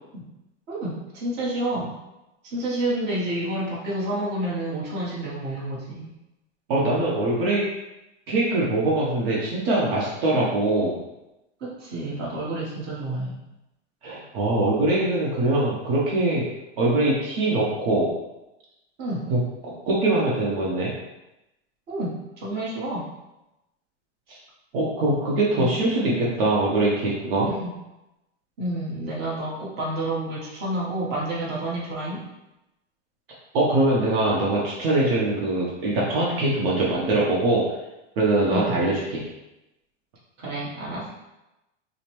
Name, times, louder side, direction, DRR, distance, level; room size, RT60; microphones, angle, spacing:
voice 1, 0.7-1.9 2.4-6.1 11.6-13.4 19.0-19.2 21.9-23.0 25.6-25.7 27.6-27.7 28.6-32.2 36.3-36.6 38.5-39.0 40.4-41.1, right 1 dB, 30° right, -6 dB, 1.1 m, -29 dB
voice 2, 6.7-7.6 8.3-10.9 14.0-16.5 16.8-18.1 19.3-20.9 24.7-27.5 33.5-37.6 38.2-39.2, right 2 dB, 50° right, -5 dB, 0.9 m, -22 dB
5.0 x 2.1 x 3.0 m, 0.95 s
supercardioid pair, 155°, 37 cm